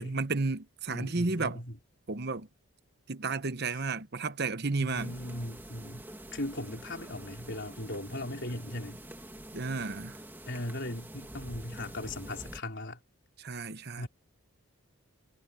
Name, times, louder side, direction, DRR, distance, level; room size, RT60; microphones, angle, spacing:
voice 1, 0.0-1.6 2.1-2.5 3.1-5.1 9.5-10.2 13.4-14.1, right 3 dB, 45° right, 1.0 m, -32 dB
voice 2, 0.9-1.8 4.8-6.1 6.3-9.0 10.5-13.0 14.0-14.1, left 1 dB, 50° left, 4.4 m, -38 dB
sound 1, 4.9-12.6, right 1 dB, 10° right, 1.8 m, -47 dB
head